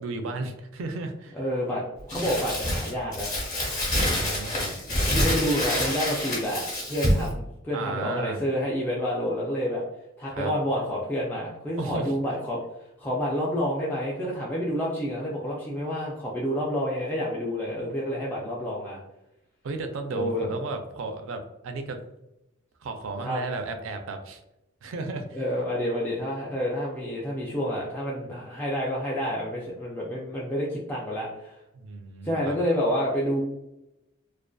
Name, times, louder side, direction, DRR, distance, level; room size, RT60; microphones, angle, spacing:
voice 1, 0.0-1.4 4.1-4.7 7.7-8.4 10.3-10.5 11.8-12.1 19.6-22.0 22.8-24.4 24.8-25.4 31.7-32.6, right 3 dB, 70° right, 6 dB, 0.4 m, -34 dB
voice 2, 1.3-3.4 5.1-9.8 10.2-12.6 13.0-19.0 20.1-20.5 23.2-23.4 25.3-31.6 32.2-33.4, equal, 10° left, -6 dB, 0.3 m, -29 dB
Crumpling crinkling, 2.1-7.3, left 1 dB, 40° left, 0.9 m, -27 dB
2.5 x 2.4 x 2.2 m, 0.91 s
head